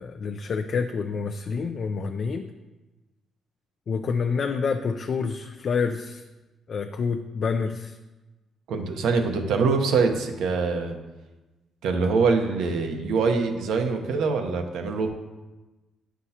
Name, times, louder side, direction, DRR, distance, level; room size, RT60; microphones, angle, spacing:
voice 1, 0.0-2.5 3.9-6.2 6.7-8.0, left 5 dB, 50° left, 5 dB, 0.4 m, -28 dB
voice 2, 8.7-11.0 11.8-15.1, right 4 dB, 80° right, 5 dB, 1.0 m, -24 dB
9.5 x 6.1 x 2.9 m, 1.1 s
cardioid pair, 90°, 0 cm